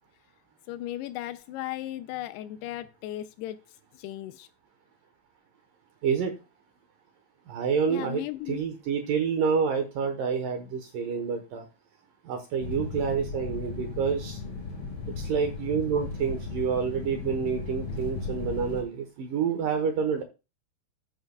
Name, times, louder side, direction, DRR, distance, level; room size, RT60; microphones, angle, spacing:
voice 1, 0.7-4.5 7.9-8.6, left 14 dB, 80° left, 10 dB, 2.5 m, -36 dB
voice 2, 6.0-6.3 7.5-11.7 12.2-14.4 15.2-20.2, right 6 dB, 70° right, 6 dB, 2.3 m, -28 dB
sound 1, 12.6-18.8, left 4 dB, 30° left, 4.0 m, -36 dB
13.5 x 8.0 x 2.3 m, 0.27 s
omnidirectional pair, 4.9 m